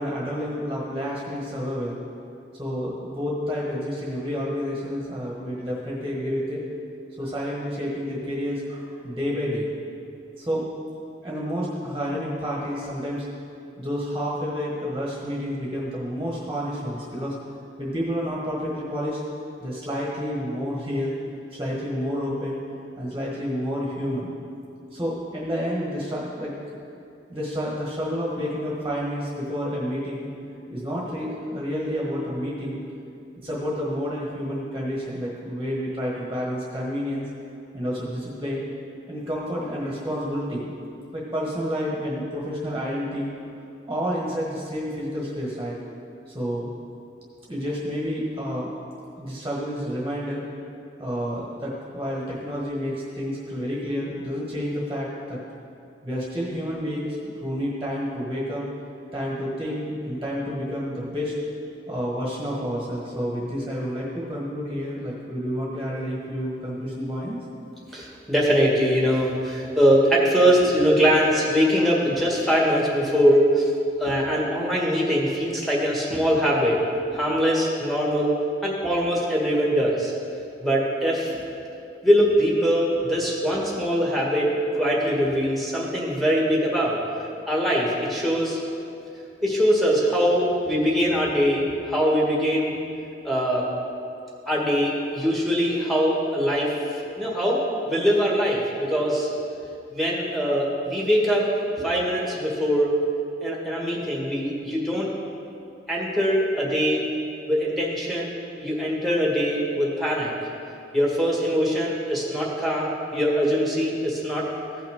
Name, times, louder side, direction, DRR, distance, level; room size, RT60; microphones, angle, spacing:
voice 1, 0.0-2.0 2.6-6.6 7.2-9.7 10.4-10.7 11.2-13.2 13.8-17.3 17.8-19.2 19.6-21.1 21.5-22.6 23.0-24.3 24.9-26.5 27.3-30.3 30.7-32.8 33.4-37.2 37.7-38.6 39.1-40.7 41.1-43.3 43.9-45.8 46.3-46.7 47.5-48.7 49.2-50.4 51.0-55.4 56.0-58.6 59.1-61.3 61.9-67.4, equal, 15° right, -5 dB, 1.4 m, -29 dB
voice 2, 67.9-73.7 74.0-76.8 77.1-78.3 78.6-80.1 80.6-81.3 82.0-87.0 87.5-88.6 89.4-92.7 93.2-93.6 94.5-96.7 97.1-97.6 97.9-99.3 99.9-101.4 101.8-102.9 103.4-105.1 105.9-107.0 107.5-110.3 110.9-114.5, equal, ahead, -4 dB, 1.6 m, -22 dB
15.5 x 5.7 x 3.6 m, 2.6 s
head